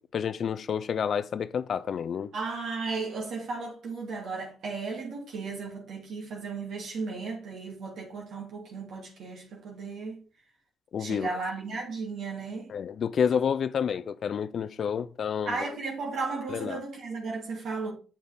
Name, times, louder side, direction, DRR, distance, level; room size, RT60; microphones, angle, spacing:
voice 1, 0.1-2.3 10.9-11.3 12.7-15.6 16.5-16.8, left 7 dB, 55° left, 0.4 m, -29 dB
voice 2, 2.3-10.2 11.0-12.7 15.4-17.9, right 4 dB, 70° right, 2.7 m, -35 dB
7.3 x 6.5 x 3.5 m
cardioid pair, 90°, 0 cm